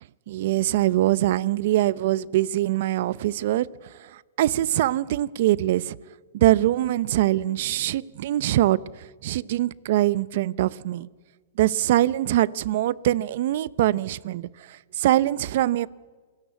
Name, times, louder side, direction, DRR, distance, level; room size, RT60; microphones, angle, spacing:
voice 1, 0.3-6.0 6.3-11.1 11.6-15.9, right 14 dB, 60° right, 21 dB, 0.7 m, -23 dB
27.5 x 17.5 x 8.3 m, 1.4 s
hypercardioid pair, 140°, 0 cm